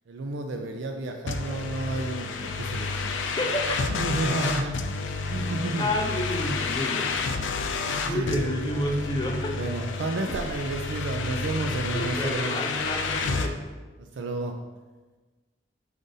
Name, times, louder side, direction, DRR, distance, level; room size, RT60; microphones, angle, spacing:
voice 1, 0.1-2.9 3.9-4.8 5.3-5.9 7.9-8.5 9.6-12.6 14.0-14.5, right 2 dB, 70° right, 4 dB, 0.3 m, -31 dB
sound 1, 1.3-13.5, left 4 dB, 75° left, 0.4 m, -30 dB
voice 2, 5.8-7.2 8.0-9.6 10.3-10.4 11.9-13.6, left 1 dB, 20° left, 0 dB, 0.5 m, -30 dB
4.9 x 2.6 x 3.9 m, 1.3 s
head